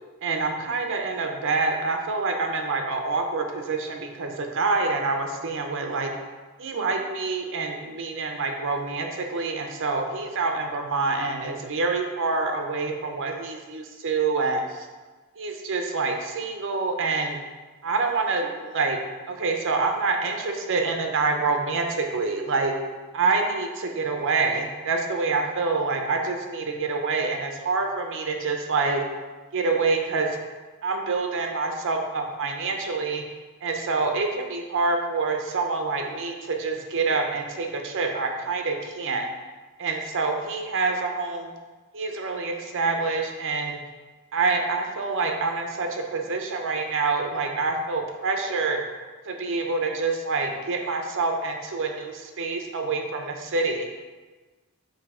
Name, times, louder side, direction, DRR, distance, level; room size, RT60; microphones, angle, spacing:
voice 1, 0.2-6.1 6.6-14.9 15.4-17.4 17.8-19.0 19.3-22.7 23.1-29.0 29.5-30.4 30.8-33.2 33.6-39.3 39.8-41.5 41.9-43.8 44.3-48.8 49.3-53.9, right 3 dB, 60° right, 3 dB, 0.7 m, -26 dB
7.2 x 2.9 x 4.9 m, 1.3 s
head